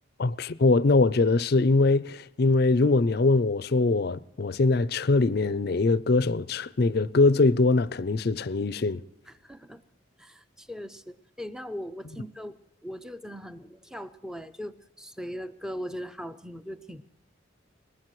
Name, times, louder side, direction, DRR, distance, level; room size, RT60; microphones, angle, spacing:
voice 1, 0.2-9.0, left 3 dB, 50° left, 0.5 m, -22 dB
voice 2, 9.3-9.8 10.2-17.0, equal, 5° right, 0.5 m, -39 dB
22.0 x 19.5 x 3.1 m
head